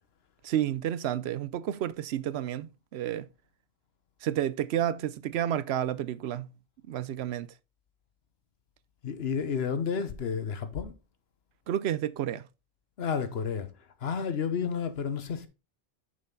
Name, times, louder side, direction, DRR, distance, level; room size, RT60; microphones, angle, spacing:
voice 1, 0.4-3.3 4.2-6.5 6.9-7.5 11.7-12.5, right 11 dB, 90° right, 0.8 m, -30 dB
voice 2, 9.0-10.9 13.0-13.7 14.0-15.5, left 6 dB, 70° left, 1.2 m, -31 dB
6.3 x 6.3 x 3.8 m
omnidirectional pair, 1.1 m